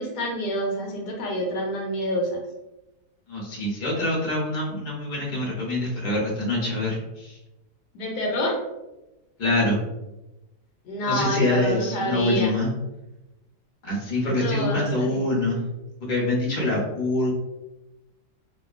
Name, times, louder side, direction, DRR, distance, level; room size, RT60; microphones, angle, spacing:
voice 1, 0.0-2.4 7.9-8.6 10.8-12.6 14.3-15.3, equal, 75° left, -1 dB, 1.1 m, -27 dB
voice 2, 3.3-7.4 9.4-9.8 11.1-12.7 13.8-15.6 16.0-17.3, left 1 dB, 40° left, -4 dB, 0.6 m, -25 dB
2.7 x 2.3 x 2.4 m, 1.0 s
omnidirectional pair, 1.8 m